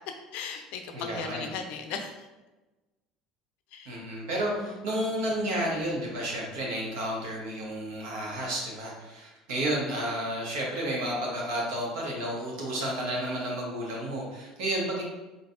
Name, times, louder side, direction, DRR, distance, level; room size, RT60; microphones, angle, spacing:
voice 1, 0.1-2.3 3.7-3.9 4.7-4.8, left 6 dB, 55° left, 5 dB, 0.5 m, -37 dB
voice 2, 0.9-1.5 3.8-15.0, right 1 dB, 60° right, -3 dB, 1.3 m, -31 dB
4.0 x 3.9 x 2.5 m, 1.1 s
figure-of-eight pair, 65°, 2 cm